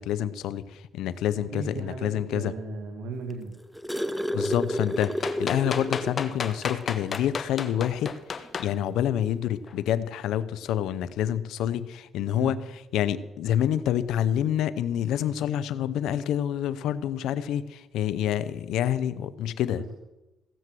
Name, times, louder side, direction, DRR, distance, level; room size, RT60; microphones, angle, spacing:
voice 1, 0.0-2.5 4.3-8.1 8.4-19.8, left 10 dB, 85° left, 16 dB, 0.6 m, -27 dB
voice 2, 1.5-3.5 12.3-12.5 19.7-19.9, right 4 dB, 85° right, 4 dB, 1.5 m, -36 dB
sound 1, 3.3-6.2 6.6-6.7 7.1-7.3 8.4-8.5, equal, ahead, 0.8 m, -30 dB
sound 2, 5.0-8.7 9.7-9.8, left 6 dB, 50° left, 1.1 m, -32 dB
16.5 x 7.6 x 7.7 m, 1.0 s
cardioid pair, 90°, 0 cm